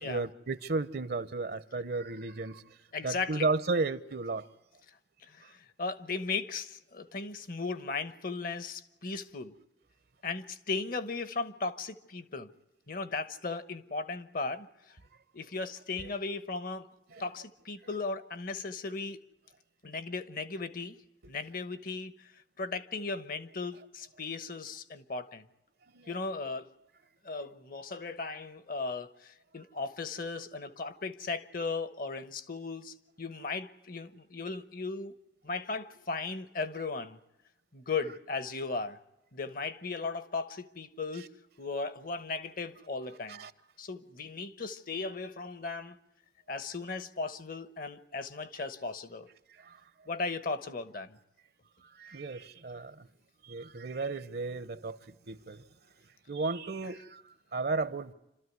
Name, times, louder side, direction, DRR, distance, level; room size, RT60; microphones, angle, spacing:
voice 1, 0.0-2.6 3.0-4.5 17.1-17.2 25.9-26.1 43.3-43.5 49.6-49.8 51.9-53.1 53.4-55.0 55.3-55.6 56.3-57.2 57.5-58.1, right 3 dB, 60° right, 0.8 m, -34 dB
voice 2, 2.9-3.5 5.2-9.5 10.2-12.5 12.9-15.0 15.3-16.9 17.2-19.2 19.8-21.0 21.3-22.3 22.6-25.5 26.1-26.7 27.2-35.1 35.4-37.2 37.7-39.0 39.3-41.3 41.6-43.5 43.8-46.0 46.5-49.3 50.1-51.2, left 4 dB, 55° left, 1.1 m, -37 dB
27.5 x 13.5 x 9.5 m
head